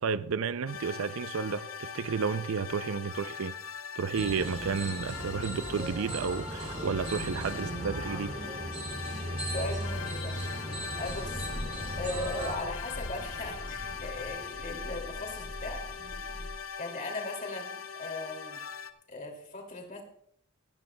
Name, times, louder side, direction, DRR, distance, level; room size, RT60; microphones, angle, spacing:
voice 1, 0.0-3.5 4.0-8.3, right 5 dB, 75° right, 0.5 m, -32 dB
sound 1, 0.7-18.9, left 7 dB, 70° left, 0.8 m, -41 dB
sound 2, 4.1-12.5, right 1 dB, 30° right, 2.8 m, -37 dB
voice 2, 9.5-10.7 11.0-11.5 12.0-15.8 16.8-18.6 19.1-20.0, left 2 dB, 40° left, 2.6 m, -38 dB
sound 3, 11.1-16.6, equal, 90° left, 3.2 m, -42 dB
17.0 x 13.5 x 2.2 m
head